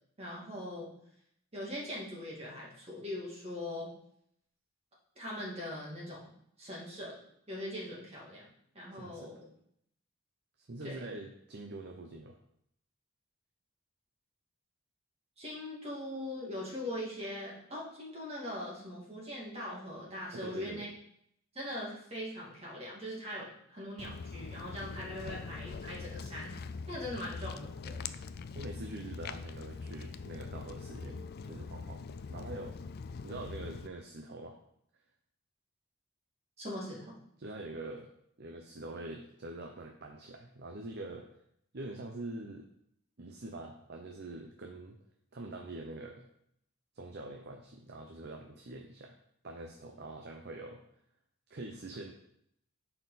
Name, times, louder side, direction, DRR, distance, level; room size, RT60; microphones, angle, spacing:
voice 1, 0.2-0.9 1.5-3.9 5.2-6.3 6.6-7.2 7.5-8.5 8.7-9.5 10.8-11.0 15.4-20.9 21.5-26.6 26.9-28.0 36.6-37.2, left 1 dB, 30° right, -4 dB, 2.4 m, -41 dB
voice 2, 8.9-9.3 10.6-12.4 20.3-20.9 28.5-32.0 32.3-32.8 33.2-34.6 37.4-38.1 38.4-41.3 41.7-42.7 43.2-45.0 45.3-46.3 46.9-49.1 49.4-50.8 51.5-52.1, right 2 dB, 50° right, 2 dB, 0.7 m, -44 dB
Walk footsteps, 24.0-33.9, left 4 dB, 45° left, 0.3 m, -43 dB
10.5 x 4.5 x 4.1 m, 0.73 s
head